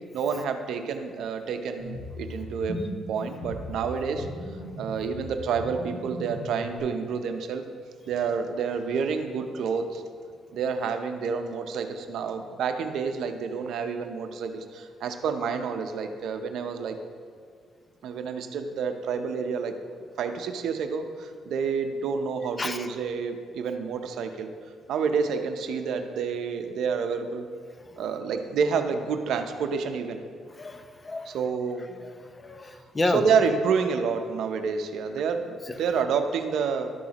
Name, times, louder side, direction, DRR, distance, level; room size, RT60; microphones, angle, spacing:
voice 1, 0.1-2.8 3.1-4.3 4.8-7.6 8.1-10.0 10.5-17.0 18.0-19.7 20.2-24.5 24.9-27.5 28.0-30.2 31.3-32.0 33.0-36.9, right 6 dB, 75° right, 7 dB, 0.6 m, -29 dB
sound 1, 1.8-6.8, left 1 dB, 85° left, 1.9 m, -38 dB
voice 2, 30.6-31.3 32.4-33.3 35.7-35.8, left 2 dB, 25° left, 8 dB, 0.6 m, -30 dB
12.0 x 6.2 x 2.9 m, 2.2 s
cardioid pair, 90°, 0 cm